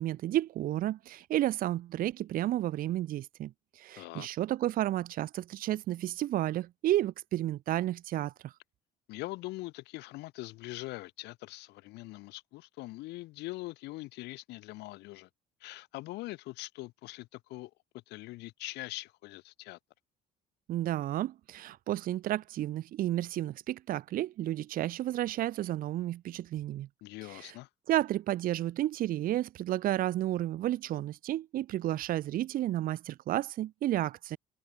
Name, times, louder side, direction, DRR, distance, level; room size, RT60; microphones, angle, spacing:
voice 1, 0.0-8.5 20.7-26.9 27.3-27.5 27.9-34.4, right 13 dB, 60° right, 0.6 m, -32 dB
voice 2, 4.0-4.3 9.1-15.3 15.6-17.7 18.1-19.8 27.0-27.7, left 20 dB, 90° left, 2.5 m, -42 dB
cardioid pair, 110°, 17 cm